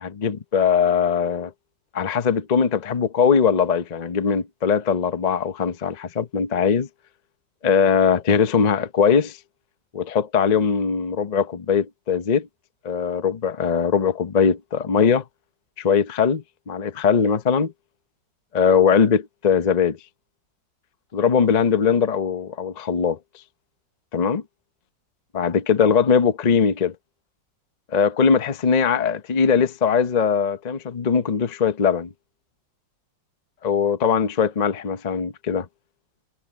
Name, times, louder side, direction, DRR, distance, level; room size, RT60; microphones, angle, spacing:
voice 1, 0.0-1.5 1.9-6.9 7.6-9.4 9.9-12.5 12.8-15.2 15.8-17.7 18.5-20.0 21.1-23.2 24.1-24.4 25.3-26.9 27.9-32.1 33.6-35.7, left 6 dB, 50° left, 0.5 m, -20 dB
omnidirectional pair, 2.0 m